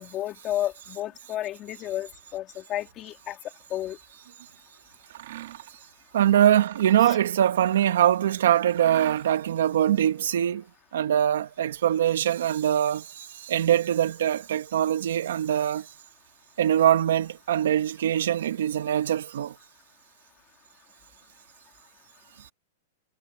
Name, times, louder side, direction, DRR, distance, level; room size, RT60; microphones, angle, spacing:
voice 1, 0.0-3.4 3.7-4.0 7.0-7.2, left 13 dB, 25° left, 2.5 m, -32 dB
Mechanisms, 5.0-5.7 6.2-8.2 8.7-9.6, right 14 dB, 55° right, 2.6 m, -42 dB
voice 2, 6.1-10.6 10.9-15.9 16.6-19.5, right 10 dB, 75° right, 1.8 m, -23 dB
supercardioid pair, 170°, 0 cm